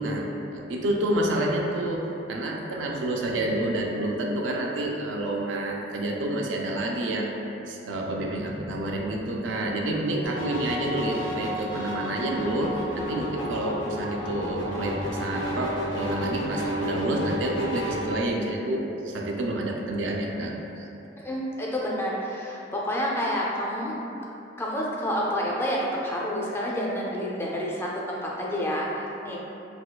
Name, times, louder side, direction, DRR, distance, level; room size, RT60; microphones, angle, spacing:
voice 1, 0.0-7.3 7.7-20.8, right 1 dB, 85° right, 0 dB, 0.4 m, -29 dB
sound 1, 10.2-18.1, equal, 75° left, 0.6 m, -31 dB
voice 2, 21.2-24.0 24.6-29.4, equal, 15° left, -4 dB, 0.3 m, -29 dB
4.2 x 2.3 x 2.2 m, 2.9 s
head